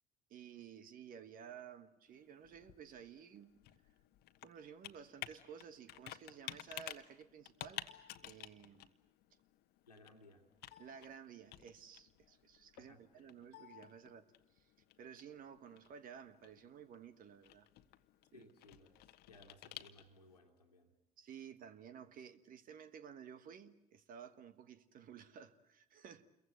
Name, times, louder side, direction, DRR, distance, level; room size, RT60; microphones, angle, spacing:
voice 1, 0.3-3.5 4.4-7.9 8.2-8.9 10.8-14.7 15.0-17.7 18.3-18.5 21.2-26.3, right 8 dB, 45° right, 1.4 m, -54 dB
Computer keyboard, 2.1-20.4, left 14 dB, 55° left, 1.3 m, -54 dB
voice 2, 9.9-10.5 12.8-13.3 18.3-20.9, left 2 dB, 85° left, 2.2 m, -62 dB
28.5 x 22.5 x 7.8 m
figure-of-eight pair, 55°, 20 cm